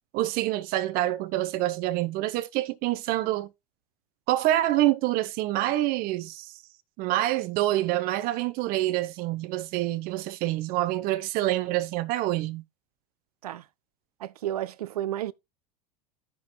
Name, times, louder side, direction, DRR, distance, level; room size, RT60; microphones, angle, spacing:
voice 1, 0.1-3.5 4.3-6.5 7.0-12.6, right 15 dB, 50° right, 0.8 m, -26 dB
voice 2, 14.2-15.3, right 12 dB, 75° right, 0.5 m, -32 dB
15.0 x 6.2 x 2.3 m
hypercardioid pair, 80°, 20 cm